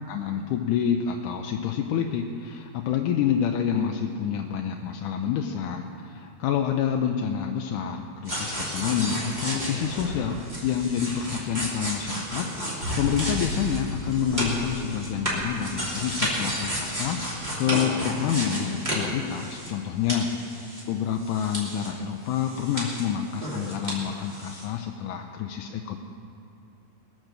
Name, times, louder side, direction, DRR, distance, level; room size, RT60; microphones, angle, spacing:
voice 1, 0.1-20.3 20.9-26.0, left 8 dB, 80° left, 3 dB, 2.2 m, -28 dB
sound 1, 8.2-19.8 20.1-21.9 22.2-24.0 24.2-24.6, equal, 15° right, 2.9 m, -32 dB
21.5 x 7.6 x 6.7 m, 2.7 s
omnidirectional pair, 3.6 m